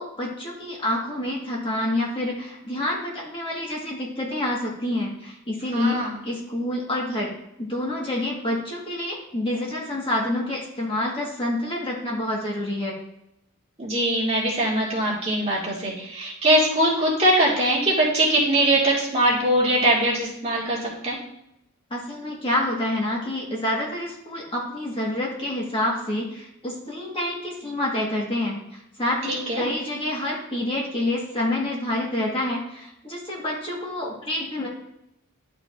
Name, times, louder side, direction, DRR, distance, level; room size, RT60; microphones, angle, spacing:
voice 1, 0.0-6.0 6.2-7.3 7.6-12.9 21.9-34.7, left 1 dB, 25° left, -3 dB, 1.6 m, -27 dB
voice 2, 5.7-6.1 13.8-21.2 29.3-29.6, right 1 dB, 30° right, -5 dB, 2.1 m, -22 dB
11.0 x 5.0 x 2.6 m, 0.82 s
head